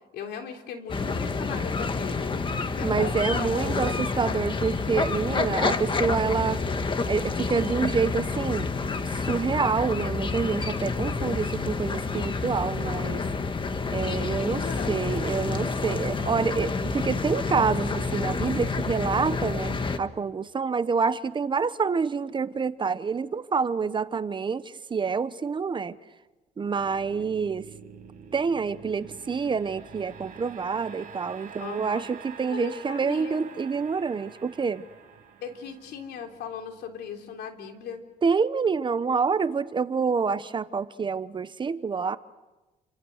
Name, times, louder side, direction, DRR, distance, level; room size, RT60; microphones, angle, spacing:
voice 1, 0.1-2.4 2.7-3.7 14.2-15.3 31.6-32.0 32.5-33.4 35.4-38.0, left 7 dB, 75° left, 4 dB, 3.5 m, -38 dB
sound 1, 0.9-20.0, left 4 dB, 30° left, 1.6 m, -28 dB
voice 2, 2.8-6.6 7.1-8.7 9.1-13.2 13.9-26.0 26.6-27.6 28.3-34.8 38.2-42.2, right 5 dB, 30° right, 14 dB, 0.9 m, -27 dB
sound 2, 26.8-38.0, right 6 dB, 50° right, 6.4 m, -47 dB
29.5 x 25.5 x 6.5 m, 1.1 s
cardioid pair, 110°, 17 cm